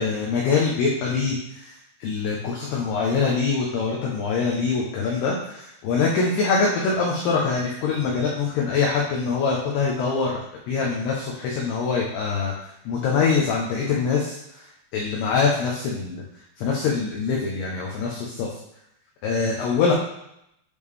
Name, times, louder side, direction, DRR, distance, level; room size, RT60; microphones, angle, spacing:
voice 1, 0.0-1.7 2.0-10.3 10.7-16.2 16.6-18.5 19.2-19.9, left 5 dB, 85° left, -2 dB, 2.3 m, -24 dB
8.4 x 3.3 x 3.5 m, 0.80 s
omnidirectional pair, 5.6 m